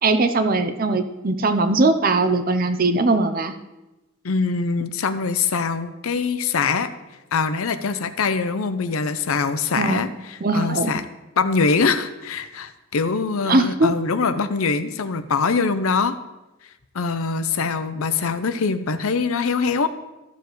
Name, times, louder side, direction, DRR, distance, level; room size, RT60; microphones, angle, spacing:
voice 1, 0.0-3.5 9.8-10.1 10.4-10.9 13.5-13.9, right 2 dB, 40° right, 9 dB, 0.6 m, -20 dB
voice 2, 4.2-6.9 7.3-11.1 11.4-16.2 16.9-19.9, left 4 dB, 80° left, 11 dB, 0.6 m, -23 dB
14.5 x 6.9 x 3.2 m, 1.0 s
head